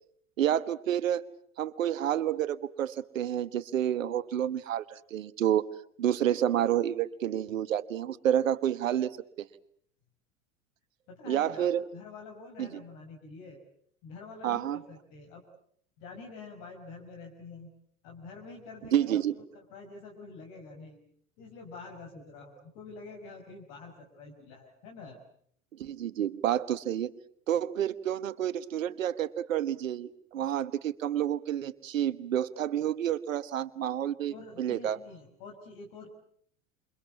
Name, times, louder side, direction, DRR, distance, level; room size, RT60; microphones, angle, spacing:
voice 1, 0.4-1.2 1.6-5.6 6.0-9.1 9.4-9.5 11.3-11.8 12.6-12.7 14.4-14.8 18.9-19.3 25.7-27.1 27.5-35.0, right 10 dB, 65° right, 15 dB, 1.3 m, -29 dB
voice 2, 11.1-13.6 14.0-15.4 16.0-17.7 18.0-21.0 21.4-25.2 34.3-36.1, left 4 dB, 50° left, 2 dB, 5.4 m, -47 dB
28.5 x 26.0 x 7.2 m, 0.65 s
figure-of-eight pair, 80°, 42 cm